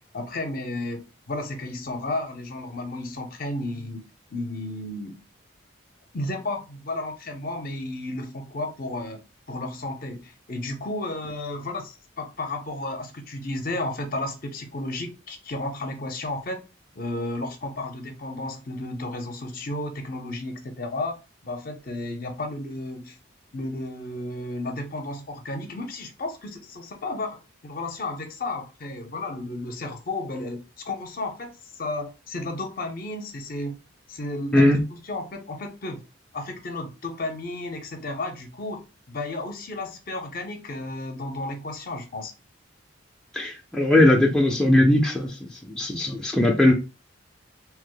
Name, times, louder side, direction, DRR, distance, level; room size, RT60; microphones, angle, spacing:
voice 1, 0.0-4.0 4.3-5.1 6.1-9.2 9.5-16.6 17.0-21.2 21.4-23.2 23.5-33.8 34.1-34.7 35.0-36.0 36.3-38.8 39.1-42.3, left 2 dB, 50° left, 0.6 m, -33 dB
voice 2, 43.3-46.7, left 1 dB, 5° left, 0.4 m, -19 dB
2.8 x 2.0 x 3.7 m
head